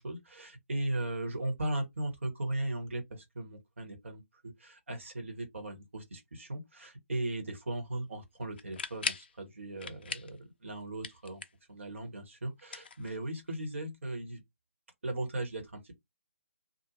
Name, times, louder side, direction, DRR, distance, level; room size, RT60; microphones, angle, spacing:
voice 1, 0.0-11.4 11.7-14.4 15.0-15.9, right 1 dB, 60° right, 1.3 m, -37 dB
sound 1, 8.6-9.3 9.8-10.4 10.7-11.7 12.6-13.5, left 5 dB, 45° left, 0.4 m, -39 dB
2.6 x 2.3 x 2.9 m
figure-of-eight pair, 140°, 8 cm